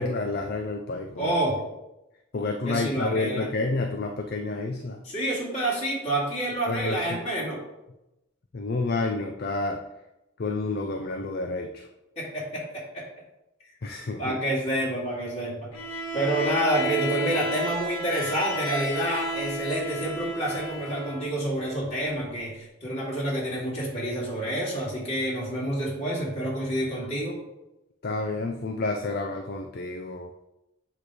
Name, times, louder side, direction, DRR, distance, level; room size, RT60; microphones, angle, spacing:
voice 1, 0.0-1.3 2.3-5.0 6.7-7.2 8.5-9.8 10.4-11.8 13.8-14.4 28.0-30.3, left 3 dB, 50° left, 4 dB, 0.5 m, -29 dB
voice 2, 1.2-1.5 2.6-3.4 5.0-7.6 12.2-13.0 14.2-15.7 16.1-27.3, right 1 dB, 30° left, -5 dB, 2.5 m, -28 dB
Bowed string instrument, 15.7-21.3, equal, 85° left, 1.3 m, -32 dB
8.2 x 3.2 x 4.9 m, 0.93 s
head